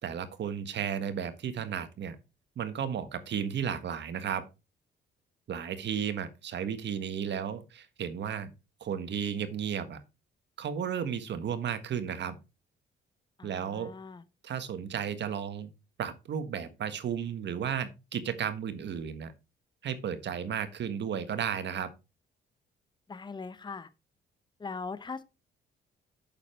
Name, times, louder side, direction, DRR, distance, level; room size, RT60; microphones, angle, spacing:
voice 1, 0.0-2.2 2.6-4.4 5.5-8.5 8.8-10.0 10.6-12.4 13.4-13.9 14.4-15.7 16.0-19.3 19.8-21.9, right 8 dB, 60° right, 1.5 m, -34 dB
voice 2, 13.4-14.2 23.1-23.9 24.6-25.2, left 4 dB, 20° left, 0.8 m, -40 dB
8.6 x 6.8 x 4.4 m
cardioid pair, 90°, 20 cm